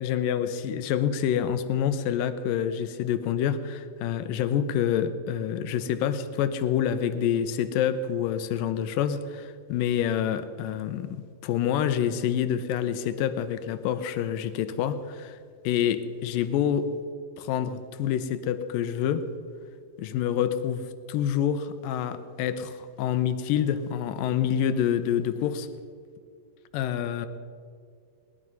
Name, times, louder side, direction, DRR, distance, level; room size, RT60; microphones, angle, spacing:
voice 1, 0.0-15.4 15.6-16.9 17.4-19.3 20.0-25.7 26.7-27.3, left 9 dB, 80° left, 11 dB, 2.2 m, -27 dB
20.0 x 12.5 x 5.4 m, 2.2 s
omnidirectional pair, 4.5 m